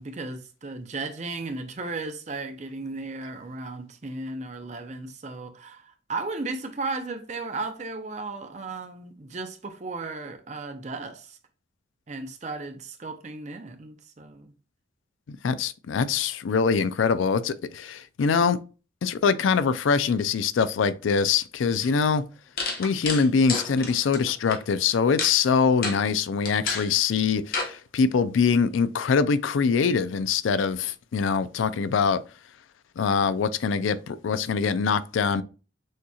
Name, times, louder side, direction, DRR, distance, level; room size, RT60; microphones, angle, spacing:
voice 1, 0.0-11.4 12.1-14.5, right 3 dB, 35° right, 0.6 m, -35 dB
voice 2, 15.3-18.6 19.0-22.2 22.8-32.2 33.0-35.4, left 5 dB, 90° left, 0.4 m, -23 dB
sound 1, 21.8-21.9 22.6-24.6 25.2-25.4 25.8-26.0 26.5-26.9 27.5-27.7, left 4 dB, 50° left, 1.0 m, -30 dB
6.4 x 2.8 x 2.3 m
head